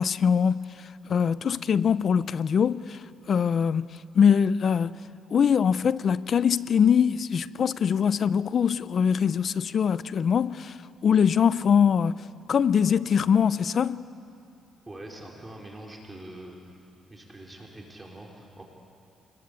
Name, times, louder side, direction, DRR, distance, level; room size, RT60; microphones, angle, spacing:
voice 1, 0.0-3.9 4.1-5.0 5.3-12.2 12.5-14.1, left 7 dB, 55° left, 0.6 m, -23 dB
voice 2, 14.9-16.6 17.1-18.6, right 1 dB, 20° right, 4.6 m, -44 dB
27.5 x 21.5 x 8.6 m
cardioid pair, 90°, 0 cm